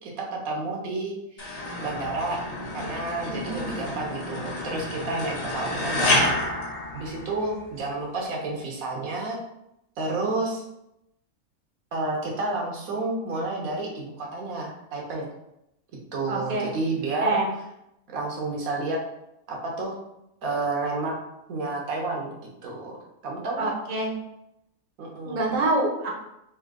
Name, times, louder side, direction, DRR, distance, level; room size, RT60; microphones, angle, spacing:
voice 1, 0.0-1.5 1.8-2.4 2.7-6.4 6.9-9.4 10.0-10.6 11.9-15.3 16.1-17.4 18.1-19.0 19.5-19.9 20.4-21.1 21.5-22.3 22.6-22.9 23.2-23.7 25.0-25.6, right 2 dB, 70° right, -1 dB, 1.3 m, -30 dB
sound 1, 1.4-7.7, left 2 dB, 50° left, 0.4 m, -29 dB
voice 2, 3.2-3.8 16.3-16.7 17.2-17.5 23.6-24.2 25.2-26.1, right 2 dB, 35° right, -1 dB, 0.7 m, -26 dB
3.7 x 2.7 x 3.6 m, 0.83 s
omnidirectional pair, 1.5 m